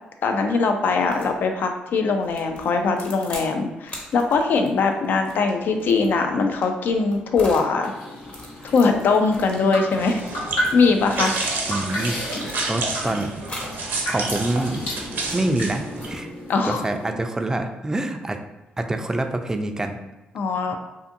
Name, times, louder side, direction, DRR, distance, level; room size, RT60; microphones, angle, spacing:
voice 1, 0.2-7.9 8.7-10.2 10.7-11.4 16.5-16.8 20.3-20.8, left 4 dB, 65° left, 5 dB, 0.3 m, -21 dB
sound 1, 1.0-1.4 2.2-3.5 3.9-7.7 8.2-11.9 12.2-13.0 13.4-13.8 14.3-16.4, left 1 dB, 35° left, 0.8 m, -41 dB
sound 2, 7.8-17.1, equal, 80° left, 0.8 m, -33 dB
sound 3, 9.9-16.1, right 3 dB, 65° right, 0.6 m, -30 dB
voice 2, 11.7-12.2 12.7-13.3 14.1-14.8 15.3-16.3 16.6-18.4 18.8-20.0, right 2 dB, 15° right, 6 dB, 0.3 m, -26 dB
2.5 x 2.5 x 2.5 m, 1.0 s
supercardioid pair, 55°, 4 cm